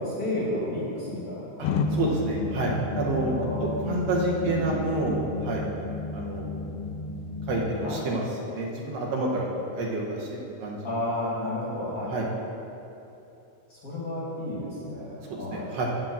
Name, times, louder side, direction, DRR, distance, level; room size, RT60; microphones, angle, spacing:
voice 1, 0.0-1.9 3.3-3.7 4.4-4.7 7.8-8.0 10.8-12.1 13.7-15.7, left 1 dB, 35° left, -6 dB, 2.0 m, -32 dB
sound 1, 1.6-7.9, left 3 dB, 85° left, 2.0 m, -32 dB
voice 2, 1.6-3.3 3.6-5.6 6.1-6.6 7.5-10.9 12.1-12.3 15.3-15.9, right 2 dB, 70° right, -1 dB, 2.0 m, -29 dB
10.5 x 3.8 x 7.3 m, 2.8 s
omnidirectional pair, 3.5 m